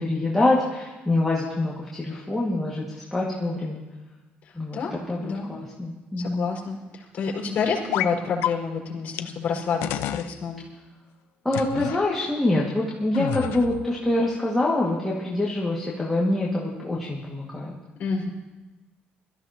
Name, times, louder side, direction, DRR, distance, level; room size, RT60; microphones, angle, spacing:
voice 1, 0.0-2.8 3.1-3.8 4.5-4.8 5.1-6.4 11.4-17.8, left 2 dB, 5° left, -5 dB, 2.0 m, -25 dB
voice 2, 4.4-4.9 5.2-5.5 6.2-10.7 18.0-18.3, left 5 dB, 45° left, -1 dB, 4.9 m, -29 dB
sound 1, 7.9-8.1 8.4-8.5 9.2-9.3 9.8-10.3 11.5-12.0 13.1-13.9, left 12 dB, 85° left, 0.6 m, -28 dB
23.0 x 14.0 x 3.0 m, 1.2 s
cardioid pair, 145°, 4 cm